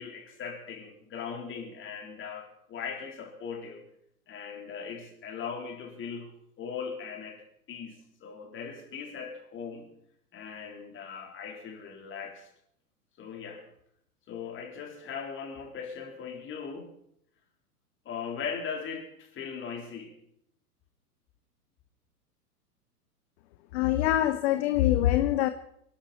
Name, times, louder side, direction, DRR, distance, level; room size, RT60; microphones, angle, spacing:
voice 1, 0.0-3.8 4.3-6.3 6.6-7.4 7.7-9.9 10.3-12.5 13.2-13.6 14.3-16.9 18.0-20.2, left 6 dB, 25° left, 2 dB, 4.1 m, -39 dB
voice 2, 23.7-25.5, left 13 dB, 45° left, 10 dB, 1.0 m, -24 dB
26.5 x 12.0 x 4.4 m, 0.72 s
figure-of-eight pair, 105°, 47 cm